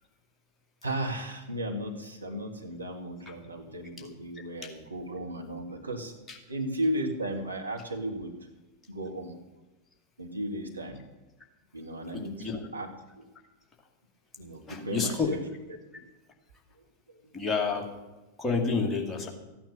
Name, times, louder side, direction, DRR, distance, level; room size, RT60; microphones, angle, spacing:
voice 1, 0.8-8.4 8.9-9.4 10.2-11.0 11.7-12.9 13.2-13.3 14.4-15.4 19.0-19.3, right 1 dB, 80° right, 2 dB, 2.0 m, -35 dB
voice 2, 12.1-12.6 14.7-15.3 17.3-17.9 18.4-19.3, left 4 dB, 15° left, 1 dB, 2.5 m, -29 dB
15.0 x 9.1 x 6.8 m, 1.1 s
figure-of-eight pair, 90°, 0 cm